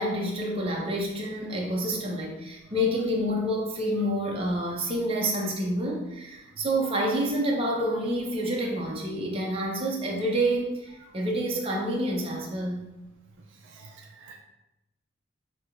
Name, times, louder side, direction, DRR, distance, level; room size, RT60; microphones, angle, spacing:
voice 1, 0.0-12.9, equal, 30° right, -3 dB, 0.8 m, -28 dB
voice 2, 13.7-14.4, right 4 dB, 65° right, 1 dB, 0.4 m, -49 dB
6.0 x 2.9 x 2.5 m, 0.96 s
head